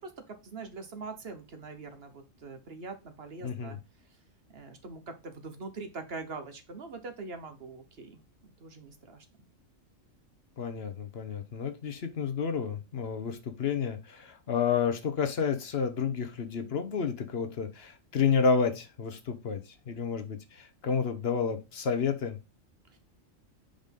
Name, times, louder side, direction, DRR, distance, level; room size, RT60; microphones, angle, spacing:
voice 1, 0.0-3.8 4.5-9.2 22.9-23.0, right 3 dB, 55° right, 7 dB, 1.2 m, -43 dB
voice 2, 3.4-3.8 10.6-22.4, left 6 dB, 55° left, 8 dB, 1.0 m, -30 dB
5.1 x 4.0 x 5.2 m, 0.27 s
omnidirectional pair, 1.4 m